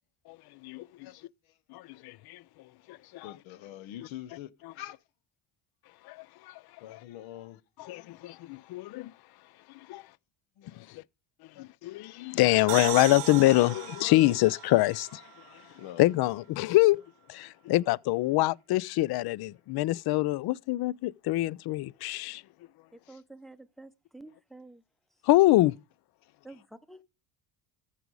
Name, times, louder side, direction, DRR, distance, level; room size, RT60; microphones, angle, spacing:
voice 1, 1.0-1.5 1.9-2.0 3.2-5.0 6.8-8.1 9.9-10.0 10.6-10.9 11.5-11.7 12.2-12.3 13.2-14.4 15.7-16.1 23.0-23.2 26.2-26.3, left 13 dB, 65° left, 0.8 m, -45 dB
voice 2, 1.7-2.4 2.9-3.3 4.6-4.7 6.0-6.6 7.8-9.1 9.9-10.0 10.8-11.0 11.6-15.2 15.5-15.6 16.0-17.0 17.3-22.4 25.2-25.7, left 18 dB, 50° left, 0.5 m, -25 dB
sound 1, 12.7-16.2, right 17 dB, 75° right, 1.2 m, -38 dB
voice 3, 22.9-24.8 26.4-26.6 26.9-27.0, right 2 dB, ahead, 0.7 m, -49 dB
14.5 x 4.9 x 5.3 m
cardioid pair, 105°, 50 cm